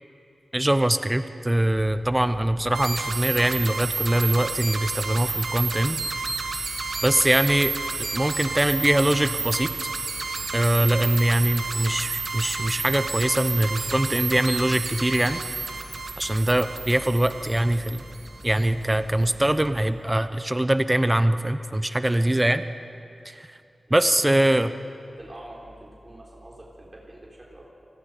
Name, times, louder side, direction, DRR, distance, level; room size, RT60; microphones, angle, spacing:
voice 1, 0.5-6.0 7.0-7.7 8.1-9.7 10.5-15.4 16.2-18.0 18.4-22.6 23.3-23.5 23.9-24.7, right 1 dB, 15° right, 11 dB, 0.8 m, -22 dB
sound 1, 1.5-19.9, left 1 dB, 40° left, 7.0 m, -44 dB
sound 2, 2.7-18.6, right 4 dB, 80° right, 1.8 m, -31 dB
voice 2, 23.9-24.6 25.1-27.7, right 1 dB, 35° right, -3 dB, 3.9 m, -45 dB
28.5 x 20.0 x 5.1 m, 2.7 s
wide cardioid pair, 70°, 0 cm